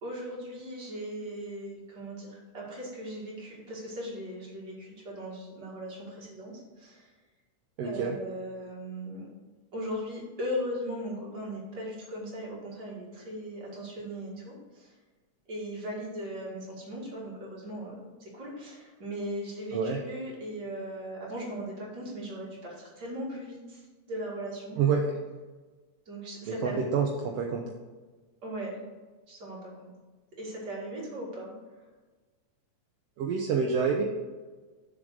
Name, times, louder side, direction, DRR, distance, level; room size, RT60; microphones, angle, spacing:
voice 1, 0.0-7.1 7.8-9.2 9.7-14.9 15.5-24.8 26.1-26.8 28.4-28.8 29.3-29.9 30.4-31.5, equal, 35° right, -4 dB, 2.7 m, -38 dB
voice 2, 7.8-8.1 19.7-20.0 24.8-25.0 26.5-27.6 33.2-34.0, right 6 dB, 70° right, 1 dB, 1.6 m, -27 dB
7.0 x 5.2 x 6.3 m, 1.3 s
omnidirectional pair, 3.4 m